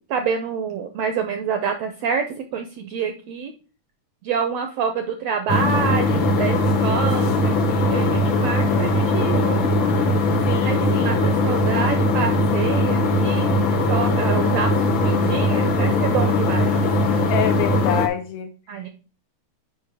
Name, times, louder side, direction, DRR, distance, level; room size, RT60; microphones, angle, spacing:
voice 1, 0.1-3.5 4.2-9.6 10.6-16.9 18.7-18.9, right 6 dB, 75° right, 7 dB, 1.5 m, -27 dB
sound 1, 5.5-18.1, left 2 dB, 55° left, 1.5 m, -20 dB
voice 2, 10.4-11.1 17.3-18.5, left 10 dB, 80° left, 7 dB, 1.7 m, -26 dB
6.9 x 5.1 x 4.7 m, 0.36 s
omnidirectional pair, 3.7 m